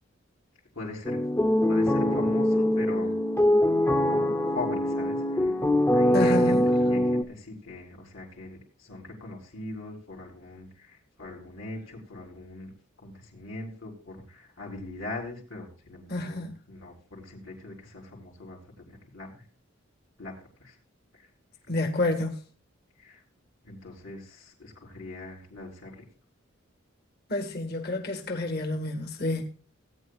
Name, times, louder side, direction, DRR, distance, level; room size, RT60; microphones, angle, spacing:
voice 1, 0.7-1.2 1.7-3.2 4.0-4.2 4.5-5.5 5.9-12.7 13.0-19.5 20.2-20.3 20.6-20.8 21.1-21.3 21.7-21.8 23.0-23.2 23.6-26.0, left 2 dB, 75° left, 4.1 m, -41 dB
sound 1, 1.0-7.2, left 1 dB, 15° left, 0.7 m, -23 dB
voice 2, 6.1-6.6 16.1-16.5 21.7-22.4 27.3-29.5, left 2 dB, 55° left, 1.7 m, -29 dB
18.0 x 9.2 x 2.4 m
head